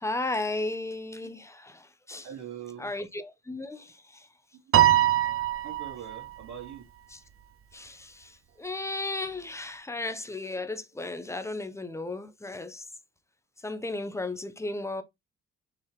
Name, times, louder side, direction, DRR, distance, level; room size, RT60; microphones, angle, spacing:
voice 1, 0.0-2.3 2.8-4.3 7.1-7.2 7.7-12.9 13.6-15.0, left 2 dB, 10° left, 0.5 m, -35 dB
voice 2, 2.2-2.9 5.6-6.8, right 9 dB, 70° right, 1.3 m, -42 dB
Piano, 4.7-6.3, right 13 dB, 45° right, 0.6 m, -22 dB
4.7 x 2.9 x 3.1 m
cardioid pair, 90°, 30 cm